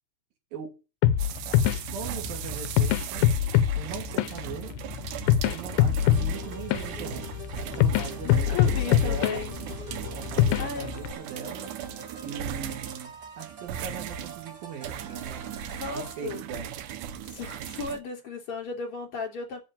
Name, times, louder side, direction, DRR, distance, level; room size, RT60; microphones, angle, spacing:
sound 1, 1.0-11.1, left 11 dB, 80° left, 2.5 m, -25 dB
sound 2, 1.2-18.0, right 9 dB, 80° right, 1.8 m, -38 dB
voice 1, 1.7-3.3 3.8-4.8 5.5-9.5 10.1-11.7 12.2-15.5 15.9-16.7, right 6 dB, 65° right, 4.1 m, -40 dB
sound 3, 6.1-16.4, right 1 dB, 40° right, 2.8 m, -45 dB
voice 2, 8.2-9.6 10.6-10.9 15.8-16.4 17.3-19.6, left 5 dB, 35° left, 3.9 m, -35 dB
7.7 x 7.1 x 8.4 m
omnidirectional pair, 4.6 m